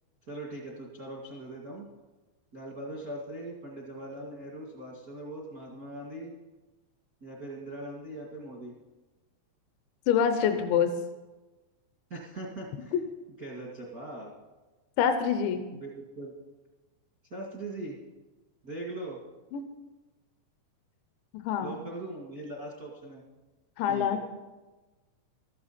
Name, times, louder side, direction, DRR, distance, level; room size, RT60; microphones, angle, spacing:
voice 1, 0.2-1.9 2.5-6.3 7.2-8.7 12.1-12.9 13.4-14.3 15.7-16.3 17.3-18.0 18.6-19.2 21.6-23.2 23.9-24.2, right 1 dB, 75° right, -3 dB, 0.8 m, -40 dB
voice 2, 10.1-10.9 12.9-13.0 15.0-15.6 19.5-19.6 21.4-21.8 23.8-24.2, left 8 dB, 85° left, 8 dB, 3.2 m, -25 dB
15.0 x 13.5 x 4.3 m, 1.2 s
omnidirectional pair, 5.2 m